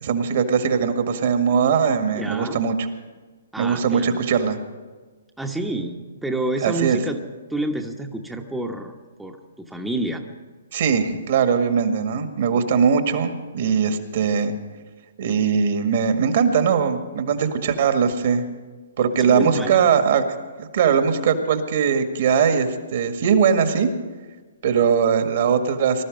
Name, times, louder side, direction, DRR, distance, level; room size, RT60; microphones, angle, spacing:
voice 1, 0.0-2.8 3.6-4.6 6.6-7.0 10.7-14.5 15.2-18.5 19.0-20.2 20.6-23.9 24.6-26.0, right 6 dB, 55° right, 7 dB, 1.8 m, -20 dB
voice 2, 2.2-2.6 3.5-4.2 5.4-7.2 7.5-8.9 9.2-10.2 19.2-19.8, right 1 dB, 5° right, 2 dB, 1.0 m, -28 dB
20.5 x 12.5 x 5.3 m, 1.3 s
hypercardioid pair, 130°, 0 cm